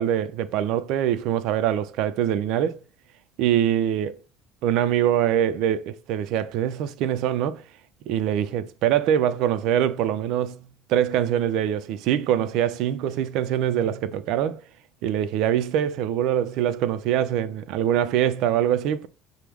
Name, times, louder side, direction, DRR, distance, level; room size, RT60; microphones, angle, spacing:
voice 1, 0.0-2.8 3.4-4.2 4.6-7.6 8.1-10.6 10.9-14.6 15.0-19.1, right 10 dB, 70° right, 0.4 m, -23 dB
5.9 x 2.0 x 3.4 m
cardioid pair, 120°, 0 cm